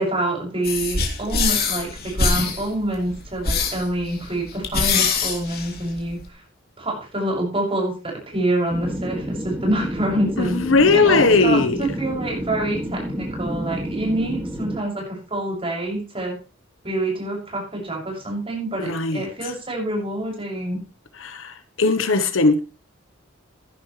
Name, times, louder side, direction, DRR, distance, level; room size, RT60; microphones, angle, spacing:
voice 1, 0.0-6.2 6.8-10.6 10.9-16.4 16.8-20.8, right 1 dB, 30° right, -1 dB, 6.6 m, -26 dB
sound 1, 0.6-6.2, left 4 dB, 50° left, 3.0 m, -24 dB
sound 2, 8.7-14.8, equal, 10° right, 2.2 m, -30 dB
voice 2, 10.4-11.9 18.8-19.2 21.2-22.6, left 3 dB, 80° left, 10 dB, 1.1 m, -18 dB
14.5 x 11.5 x 3.3 m, 0.31 s
head